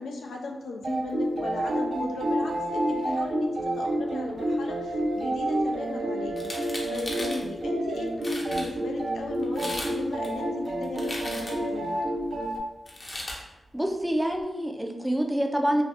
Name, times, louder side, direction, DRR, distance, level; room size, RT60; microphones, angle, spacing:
voice 1, 0.0-6.5 6.9-12.0, left 3 dB, 90° left, 2 dB, 0.3 m, -37 dB
sound 1, 0.8-12.6, right 1 dB, 60° right, 0.5 m, -29 dB
sound 2, 6.3-7.4 8.0-8.1 8.2-8.7 9.4-10.0 10.2-11.7 12.9-13.4, left 1 dB, 35° left, 0.6 m, -36 dB
voice 2, 13.7-15.8, equal, 5° right, 3 dB, 0.4 m, -26 dB
2.4 x 2.4 x 3.4 m, 1.0 s
cardioid pair, 65°, 0 cm